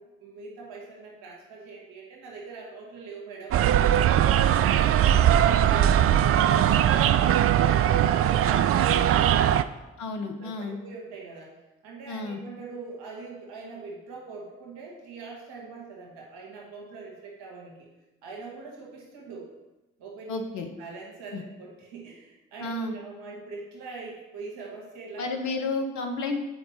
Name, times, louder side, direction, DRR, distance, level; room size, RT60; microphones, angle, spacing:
voice 1, 0.0-9.7 10.4-11.5 11.8-17.9 18.2-19.5 20.0-25.3, right 4 dB, 75° right, -2 dB, 1.6 m, -42 dB
sound 1, 3.5-9.6, right 10 dB, 45° right, 0.4 m, -20 dB
voice 2, 10.0-10.8 12.1-12.4 20.3-20.7 21.3-21.4 22.6-23.0 25.2-26.4, left 3 dB, 65° left, 5 dB, 1.0 m, -31 dB
7.7 x 4.6 x 4.2 m, 1.0 s
hypercardioid pair, 40°, 31 cm